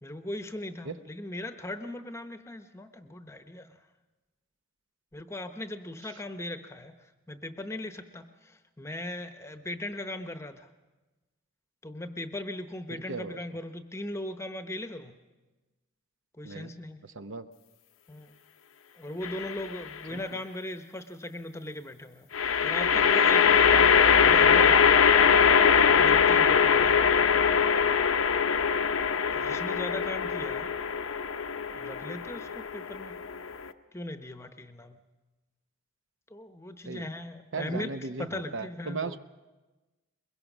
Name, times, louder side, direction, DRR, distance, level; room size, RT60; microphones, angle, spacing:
voice 1, 0.0-3.7 5.1-6.9 7.3-10.7 11.8-15.2 16.4-17.0 18.1-18.3 19.0-22.3 22.6-25.0 25.9-27.2 29.3-30.7 31.7-33.1 33.9-35.0 36.3-39.2, left 1 dB, 15° left, 8 dB, 0.9 m, -38 dB
voice 2, 12.9-13.4 16.4-16.7 17.0-17.5 20.1-20.4 36.8-37.1 37.5-39.2, right 4 dB, 65° right, 10 dB, 0.8 m, -37 dB
sound 1, 19.2-19.8 22.3-33.7, left 6 dB, 80° left, 0.8 m, -22 dB
22.5 x 22.0 x 6.1 m, 1.2 s
head